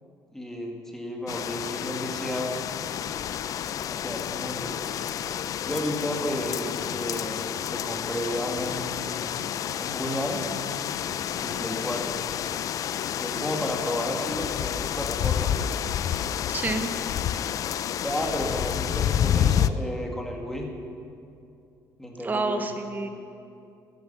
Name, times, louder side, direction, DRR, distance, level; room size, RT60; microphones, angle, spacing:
voice 1, 0.3-2.6 3.9-4.7 5.6-9.4 9.8-10.4 11.4-12.2 13.2-15.7 18.0-20.7 22.0-22.7, left 1 dB, 5° left, 1 dB, 2.0 m, -32 dB
sound 1, 1.3-19.7, left 9 dB, 55° left, 0.4 m, -29 dB
voice 2, 16.5-16.9 22.2-23.1, right 3 dB, 25° right, 6 dB, 1.0 m, -28 dB
13.0 x 10.0 x 6.9 m, 2.6 s
cardioid pair, 110°, 7 cm